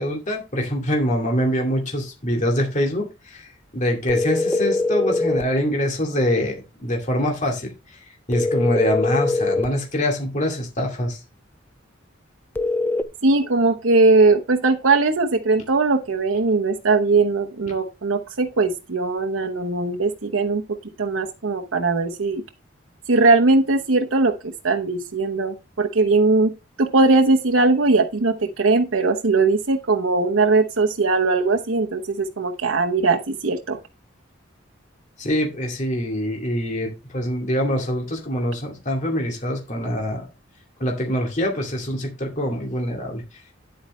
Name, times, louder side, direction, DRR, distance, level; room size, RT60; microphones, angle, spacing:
voice 1, 0.0-3.5 3.7-7.7 8.3-11.2 35.2-40.3 40.8-43.2, equal, 40° left, 2.4 m, -24 dB
sound 1, 4.1-5.5 8.3-9.7 12.6-13.0, left 2 dB, 10° left, 0.5 m, -22 dB
voice 2, 13.2-20.6 21.0-22.4 23.1-26.5 26.8-33.8, right 3 dB, 90° right, 1.0 m, -20 dB
9.5 x 8.7 x 3.2 m
head